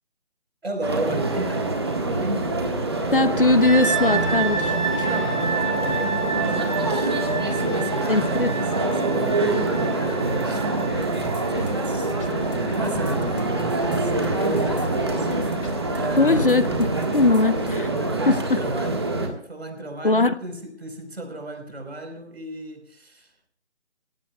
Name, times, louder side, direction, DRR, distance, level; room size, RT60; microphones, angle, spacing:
voice 1, 0.6-2.6 5.1-15.7 16.0-16.6 18.0-19.0 19.4-23.5, right 1 dB, 60° right, 4 dB, 4.6 m, -34 dB
sound 1, 0.8-19.3, right 2 dB, 20° right, 1.6 m, -25 dB
voice 2, 3.1-5.1 8.1-8.5 16.2-17.9 18.3-18.6 20.0-20.3, left 2 dB, 50° left, 14 dB, 0.8 m, -20 dB
sound 2, 3.6-16.5, right 4 dB, 85° right, 7.0 m, -31 dB
sound 3, 10.9-17.8, left 1 dB, 85° left, 4.4 m, -38 dB
26.5 x 16.5 x 2.3 m, 0.67 s
figure-of-eight pair, 170°, 36 cm